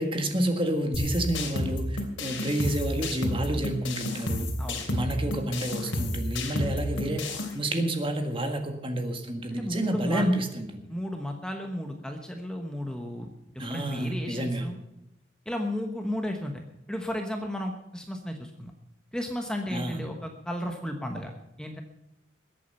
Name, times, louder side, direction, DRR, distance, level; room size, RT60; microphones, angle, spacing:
voice 1, 0.0-4.5 4.9-10.8 13.6-14.7 19.7-20.0, right 1 dB, 25° right, 5 dB, 1.8 m, -29 dB
sound 1, 0.9-7.5, left 1 dB, 75° left, 3.1 m, -31 dB
voice 2, 9.5-10.2 10.9-14.8 15.5-16.5 16.9-18.7 19.1-21.3 21.6-21.8, left 1 dB, 5° left, 3 dB, 1.1 m, -34 dB
21.0 x 8.5 x 5.6 m, 0.87 s
head